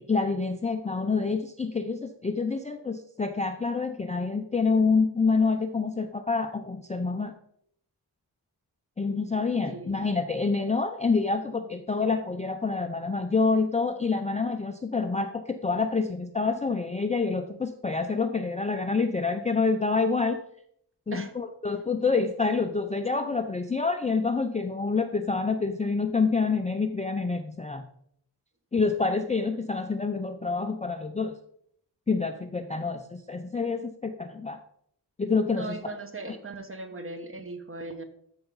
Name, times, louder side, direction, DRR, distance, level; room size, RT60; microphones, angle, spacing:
voice 1, 0.0-7.3 9.0-20.4 21.1-27.8 28.7-31.3 32.1-34.6 35.2-35.8 36.3-36.4, left 4 dB, 15° left, 6 dB, 0.4 m, -27 dB
voice 2, 9.7-10.0 21.1-21.3 35.6-38.0, right 2 dB, 30° right, 7 dB, 1.2 m, -38 dB
13.5 x 5.7 x 3.9 m, 0.69 s
wide cardioid pair, 150°, 42 cm